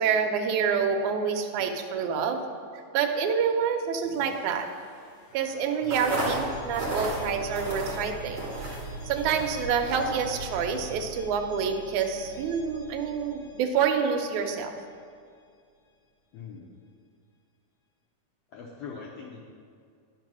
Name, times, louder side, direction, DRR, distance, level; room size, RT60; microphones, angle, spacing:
voice 1, 0.0-2.4 2.9-4.7 5.3-8.5 9.0-14.7, right 6 dB, 75° right, 4 dB, 2.0 m, -27 dB
sound 1, 4.0-14.8, right 2 dB, 50° left, 1.7 m, -45 dB
sound 2, 5.8-10.9, right 1 dB, 45° right, 2.6 m, -34 dB
voice 2, 16.3-16.7 18.5-19.4, left 5 dB, 80° left, -2 dB, 1.4 m, -42 dB
10.5 x 4.8 x 6.0 m, 2.2 s
omnidirectional pair, 3.7 m